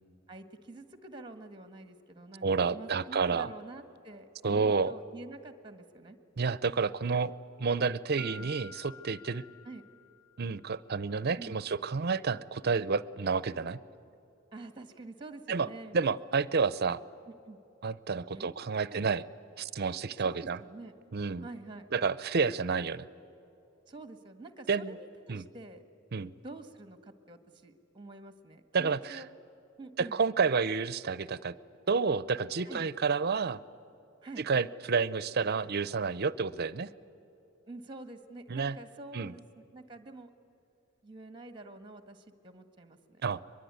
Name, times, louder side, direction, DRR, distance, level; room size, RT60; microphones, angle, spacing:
voice 1, 0.3-6.2 8.2-8.5 9.6-9.8 11.4-11.6 14.5-16.0 17.3-17.6 18.3-19.3 20.2-20.9 21.4-21.9 23.9-25.8 26.4-29.3 29.8-30.2 32.6-32.9 34.2-34.4 37.7-40.3 41.0-43.2, right 2 dB, 25° right, 9 dB, 1.6 m, -47 dB
voice 2, 2.4-3.5 4.4-4.9 6.4-7.3 7.6-9.4 10.4-13.8 15.5-15.7 15.9-17.0 17.8-19.2 19.6-20.6 21.1-21.5 21.9-23.1 24.7-25.0 25.3-25.5 26.1-26.3 28.7-29.2 30.0-31.5 31.9-33.6 34.4-36.9 38.5-38.8 39.1-39.3 43.2-43.4, right 5 dB, 55° right, 18 dB, 0.6 m, -30 dB
Mallet percussion, 8.2-10.7, left 4 dB, 70° left, 1.9 m, -51 dB
22.5 x 22.5 x 9.5 m, 2.9 s
head